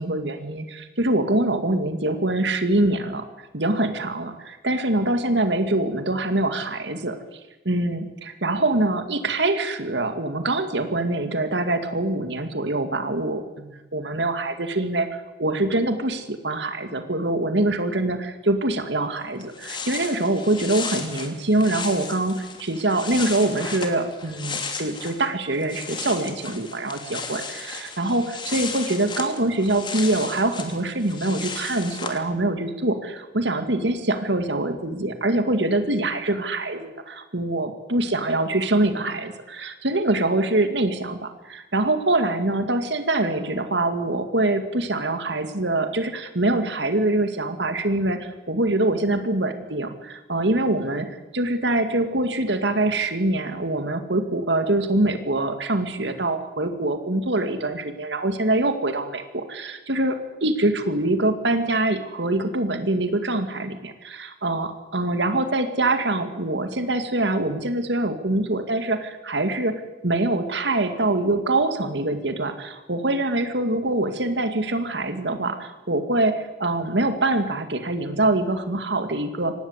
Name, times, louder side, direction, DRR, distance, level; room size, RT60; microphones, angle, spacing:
voice 1, 0.0-3.3 3.5-7.4 7.6-51.0 51.3-69.7 70.0-79.5, right 2 dB, 70° right, 8 dB, 2.1 m, -24 dB
sound 1, 19.1-19.2 19.4-25.3 25.5-32.2, left 5 dB, 25° left, 2.9 m, -35 dB
25.0 x 19.5 x 8.2 m, 1.1 s
head